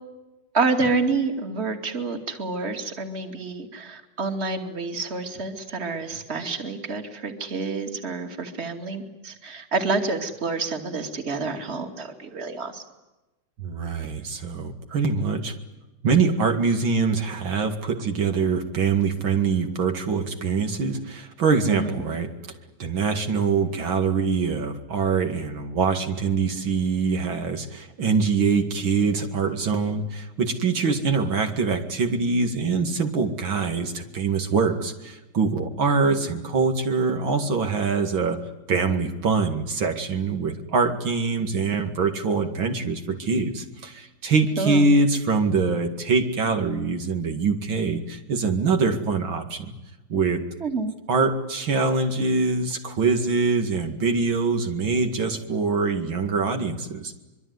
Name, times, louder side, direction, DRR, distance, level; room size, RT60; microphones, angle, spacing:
voice 1, 0.5-12.8 21.7-22.0 36.0-36.2 44.6-44.9 50.6-50.9, right 3 dB, 30° right, 5 dB, 2.7 m, -28 dB
voice 2, 13.6-15.6 16.0-22.3 22.8-38.4 38.7-49.7 50.1-50.4 51.1-57.1, right 4 dB, 75° right, 5 dB, 3.0 m, -24 dB
25.0 x 23.5 x 9.6 m, 1.0 s
omnidirectional pair, 2.2 m